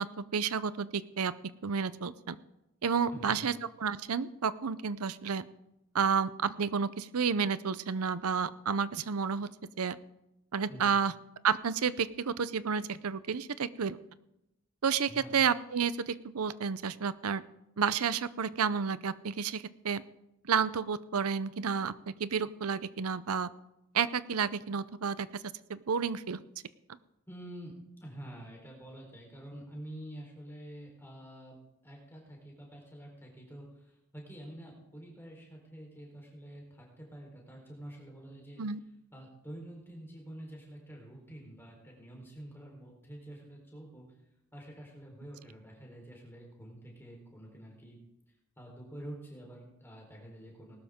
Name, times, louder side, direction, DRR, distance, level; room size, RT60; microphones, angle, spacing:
voice 1, 0.0-1.3 1.6-2.4 2.8-5.5 5.9-9.5 9.8-10.0 10.5-11.1 11.4-14.0 14.8-17.4 17.8-20.0 20.4-23.5 23.9-25.4 25.7-26.4 38.6-38.8, right 6 dB, 90° right, 16 dB, 0.6 m, -31 dB
voice 2, 3.1-3.6 10.7-11.0 15.1-15.4 27.3-27.7 28.0-31.6 31.8-38.6 39.1-44.1 44.5-48.0 48.6-50.8, right 1 dB, 10° left, -1 dB, 3.9 m, -48 dB
19.5 x 12.5 x 3.7 m, 0.88 s
head